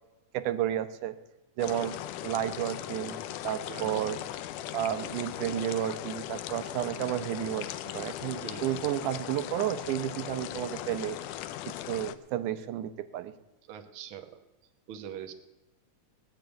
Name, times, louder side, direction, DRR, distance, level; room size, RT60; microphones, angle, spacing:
voice 1, 0.3-1.2 1.6-4.2 4.7-11.2 11.9-13.3, right 12 dB, 80° right, 11 dB, 2.2 m, -32 dB
sound 1, 1.6-12.2, left 13 dB, 85° left, 2.2 m, -39 dB
voice 2, 3.7-4.1 8.4-8.7 13.7-14.4 14.9-15.3, right 8 dB, 60° right, 7 dB, 1.4 m, -42 dB
18.0 x 6.9 x 9.0 m, 1.1 s
omnidirectional pair, 3.6 m